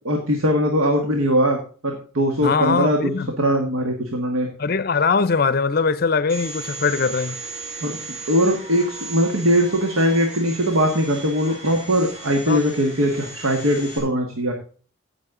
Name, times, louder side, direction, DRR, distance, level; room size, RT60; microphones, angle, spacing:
voice 1, 0.0-4.5 7.8-8.0 8.3-14.5, equal, 85° right, 1.5 m, -21 dB
voice 2, 2.4-3.3 4.6-7.4 12.5-12.6, left 5 dB, 45° left, 0.5 m, -21 dB
Domestic sounds home sounds, 6.3-14.0, right 2 dB, 30° right, 4.4 m, -36 dB
16.0 x 6.3 x 3.7 m
head